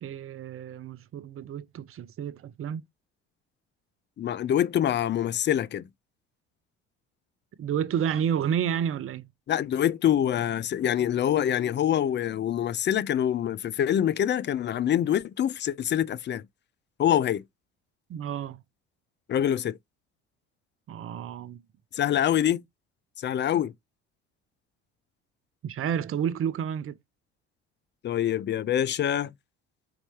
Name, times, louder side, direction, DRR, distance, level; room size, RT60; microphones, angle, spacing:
voice 1, 0.0-2.8 7.6-9.3 18.1-18.6 20.9-21.6 25.6-27.0, right 8 dB, 40° right, 0.6 m, -30 dB
voice 2, 4.2-5.9 9.5-16.4 17.0-17.4 19.3-19.7 21.9-22.6 23.2-23.7 28.0-29.3, left 10 dB, 35° left, 0.5 m, -25 dB
4.3 x 2.9 x 3.0 m
hypercardioid pair, 60°, 34 cm